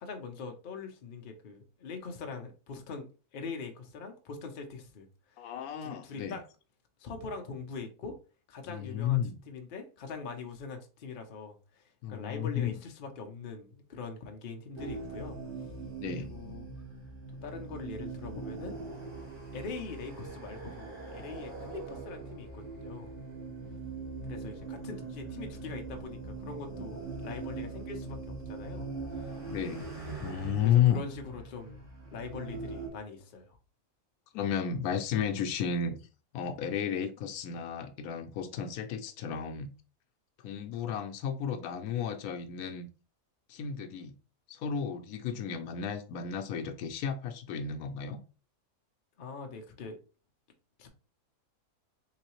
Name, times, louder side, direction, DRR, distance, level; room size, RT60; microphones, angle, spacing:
voice 1, 0.0-5.5 5.8-6.4 7.0-8.2 8.5-15.4 16.2-16.7 17.4-18.8 19.5-23.1 24.2-29.5 30.6-33.6 49.2-50.0 50.8-50.9, left 4 dB, 50° left, 0.7 m, -43 dB
voice 2, 5.4-6.4 8.7-9.4 12.0-12.8 16.0-16.3 29.5-29.9 30.2-31.0 34.3-36.0 36.3-39.7 40.4-42.9 43.5-44.2 44.5-48.2, left 8 dB, 80° left, 1.1 m, -32 dB
sound 1, 14.8-32.9, right 3 dB, 40° right, 1.4 m, -42 dB
3.8 x 3.2 x 3.0 m
omnidirectional pair, 1.5 m